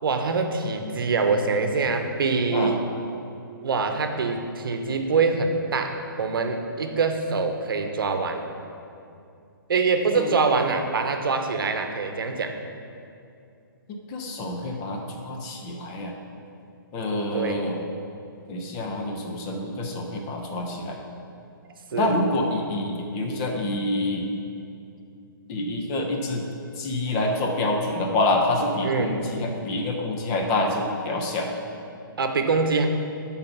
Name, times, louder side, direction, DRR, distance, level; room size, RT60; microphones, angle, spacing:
voice 1, 0.0-2.8 3.6-8.5 9.7-12.5 17.3-17.6 21.9-22.2 28.8-29.2 32.2-32.9, right 4 dB, 75° right, 6 dB, 0.8 m, -24 dB
voice 2, 14.1-16.1 16.9-17.8 18.5-21.0 21.9-24.3 25.5-26.4 26.8-31.5, left 2 dB, 25° left, 1 dB, 0.8 m, -27 dB
7.5 x 4.1 x 5.8 m, 2.6 s
hypercardioid pair, 145°, 12 cm